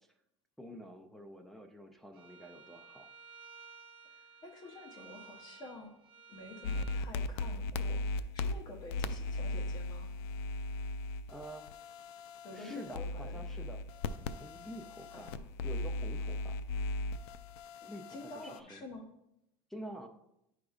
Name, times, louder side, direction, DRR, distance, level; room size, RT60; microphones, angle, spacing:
voice 1, 0.6-3.1 11.3-11.8 12.5-13.8 14.4-15.3 15.6-16.6 17.9-18.1 18.4-18.8 19.7-20.1, right 1 dB, ahead, 2 dB, 0.3 m, -48 dB
Bowed string instrument, 2.1-7.0, right 5 dB, 35° right, 1.0 m, -54 dB
voice 2, 4.2-5.9 6.3-10.1 12.4-13.4 15.1-15.4 17.8-19.1, left 2 dB, 30° left, 3 dB, 0.8 m, -49 dB
sound 1, 6.6-18.6, left 2 dB, 75° left, 0.4 m, -38 dB
11.0 x 4.9 x 2.3 m, 0.81 s
cardioid pair, 165°, 14 cm